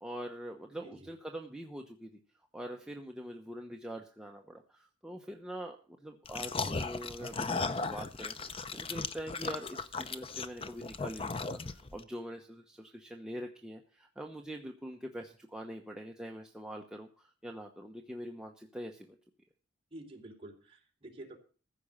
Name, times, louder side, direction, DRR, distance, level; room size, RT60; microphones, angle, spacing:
voice 1, 0.0-2.2 2.5-19.2, equal, 5° right, 1 dB, 0.9 m, -44 dB
sound 1, 6.3-12.0, left 4 dB, 30° left, 0.7 m, -36 dB
voice 2, 19.9-21.4, right 1 dB, 30° right, 0 dB, 3.4 m, -49 dB
15.0 x 5.3 x 8.8 m, 0.39 s
head